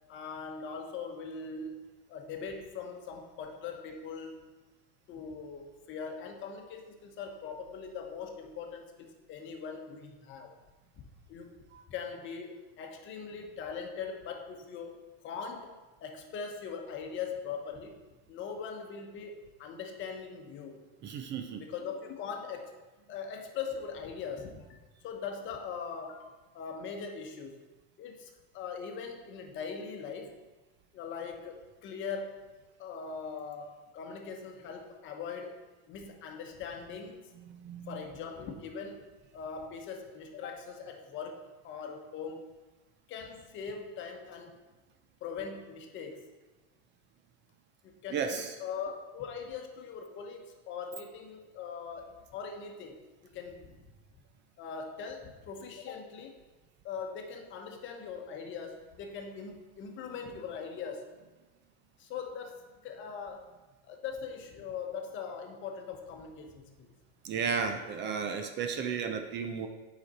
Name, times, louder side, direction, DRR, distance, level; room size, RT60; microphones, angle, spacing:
voice 1, 0.1-4.5 5.1-10.5 11.0-11.5 11.9-15.0 15.2-18.0 18.3-20.8 21.6-22.8 23.1-27.6 28.0-30.4 30.9-32.4 32.8-35.6 35.9-37.3 37.9-42.5 43.1-44.6 45.2-46.3 47.8-53.8 54.6-56.4 56.8-61.1 62.0-63.5 63.8-66.9, left 6 dB, 40° left, 3 dB, 1.0 m, -41 dB
voice 2, 21.0-21.6 37.5-38.0 48.1-48.5 67.2-69.7, right 6 dB, 35° right, 6 dB, 0.6 m, -34 dB
7.8 x 5.1 x 4.2 m, 1.2 s
supercardioid pair, 135°, 30 cm